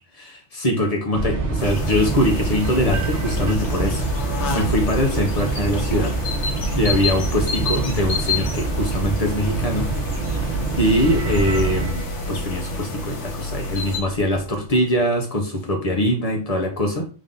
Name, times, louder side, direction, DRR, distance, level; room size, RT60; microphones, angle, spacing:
voice 1, 0.2-4.1 4.5-6.2 6.7-9.9 10.3-10.5 10.8-17.1, left 1 dB, 35° left, 3 dB, 0.8 m, -22 dB
sound 1, 1.1-11.9, right 3 dB, 85° right, 1.2 m, -25 dB
sound 2, 1.6-14.0, left 5 dB, 80° left, 1.1 m, -31 dB
sound 3, 10.7-15.1, right 1 dB, 70° right, 1.4 m, -32 dB
3.5 x 2.7 x 3.6 m, 0.36 s
omnidirectional pair, 1.2 m